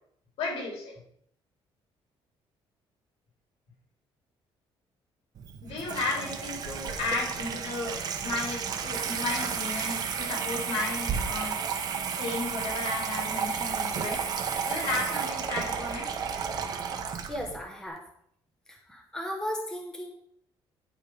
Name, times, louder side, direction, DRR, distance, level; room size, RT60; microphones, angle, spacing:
voice 1, 0.4-1.0 5.6-11.6 12.1-14.3 14.6-16.1, left 3 dB, 85° left, -1 dB, 3.8 m, -34 dB
Water tap faucet / Sink (filling or washing), 5.4-17.6, right 6 dB, 40° right, 0.9 m, -32 dB
voice 2, 17.3-18.0 18.7-20.1, equal, 5° left, 0 dB, 1.1 m, -36 dB
9.9 x 5.7 x 4.8 m, 0.69 s
cardioid pair, 180°, 10 cm